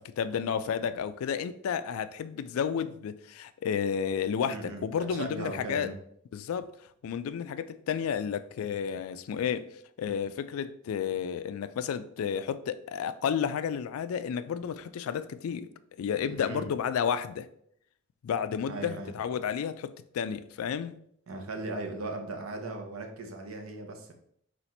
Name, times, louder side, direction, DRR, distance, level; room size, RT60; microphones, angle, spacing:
voice 1, 0.0-5.9 6.3-6.7 7.0-9.7 10.0-15.7 16.0-17.5 18.2-21.0, left 7 dB, 85° left, 0.3 m, -31 dB
voice 2, 4.4-6.0 16.3-16.7 18.7-19.1 21.3-24.1, right 2 dB, 75° right, 0.7 m, -38 dB
4.1 x 2.5 x 4.2 m
head